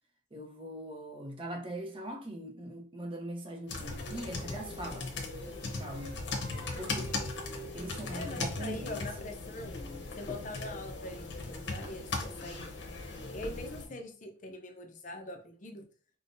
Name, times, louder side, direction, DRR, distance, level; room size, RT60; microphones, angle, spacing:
voice 1, 0.3-5.1 5.6-6.2 6.8-7.1 7.7-9.0, right 1 dB, 30° right, 0.6 m, -41 dB
sound 1, 3.7-13.9, left 3 dB, 70° left, 0.9 m, -38 dB
Singing, 3.9-9.1, right 2 dB, 65° right, 0.8 m, -49 dB
voice 2, 8.1-9.7 10.2-12.7 13.3-15.9, left 2 dB, 45° left, 0.5 m, -43 dB
5.2 x 2.1 x 2.6 m
head